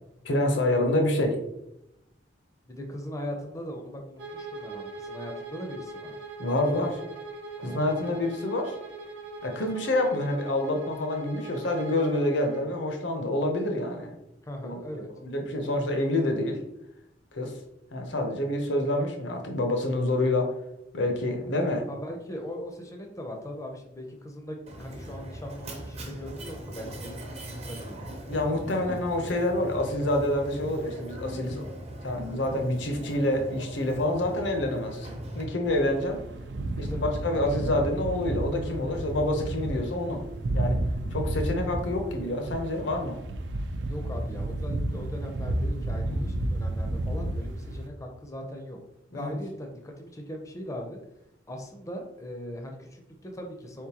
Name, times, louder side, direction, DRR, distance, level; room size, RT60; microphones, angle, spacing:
voice 1, 0.2-1.4 6.4-7.0 7.6-8.7 9.4-14.1 14.6-14.8 15.2-16.6 17.3-17.5 17.9-20.5 20.9-21.8 28.2-31.6 32.0-36.2 36.8-40.2 40.5-40.8 41.1-43.2 46.0-46.3 49.1-49.3, left 1 dB, 75° left, 3 dB, 0.8 m, -27 dB
voice 2, 2.7-6.2 7.6-8.1 14.4-15.1 21.9-28.8 36.9-37.1 43.8-48.8 49.1-51.0 51.5-53.9, equal, 15° left, 2 dB, 0.5 m, -39 dB
Bowed string instrument, 4.2-12.7, right 2 dB, 85° right, 0.8 m, -41 dB
Mechanisms, 24.7-35.4, right 1 dB, 35° right, 0.7 m, -40 dB
sound 1, 35.6-47.9, right 1 dB, 65° right, 0.4 m, -32 dB
4.3 x 3.7 x 2.8 m, 0.86 s
head